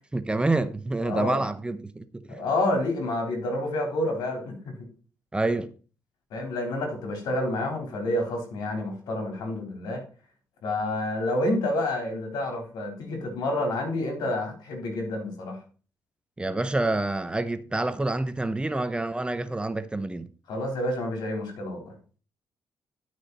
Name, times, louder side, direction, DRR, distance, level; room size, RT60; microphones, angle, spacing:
voice 1, 0.1-2.4 5.3-5.7 16.4-20.3, right 2 dB, 15° right, 0.7 m, -27 dB
voice 2, 1.0-1.4 2.3-4.7 6.3-10.0 10.6-15.6 20.5-21.9, left 1 dB, 85° left, 3.8 m, -29 dB
11.5 x 6.2 x 4.1 m
cardioid pair, 105°, 7 cm